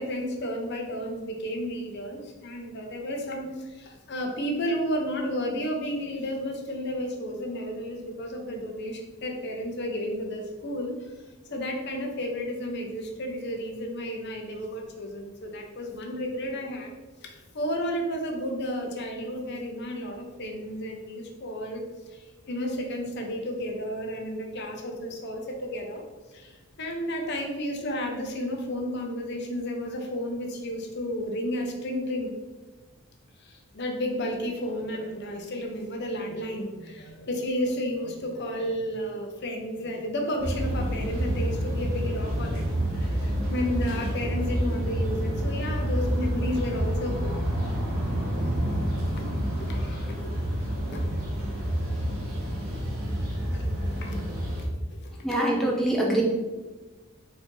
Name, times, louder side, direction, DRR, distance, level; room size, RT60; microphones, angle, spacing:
voice 1, 0.0-10.9 11.5-16.9 17.2-21.8 22.1-26.0 26.3-26.5 26.8-32.3 33.4-47.3 49.1-49.3 49.6-50.4 50.7-51.2 53.5-53.7 54.0-54.2 55.0-55.4, equal, 50° left, 2 dB, 0.7 m, -32 dB
sound 1, 40.4-54.6, equal, 90° right, 1.1 m, -28 dB
voice 2, 55.2-56.2, right 1 dB, ahead, -2 dB, 0.5 m, -24 dB
4.2 x 2.7 x 4.4 m, 1.2 s
head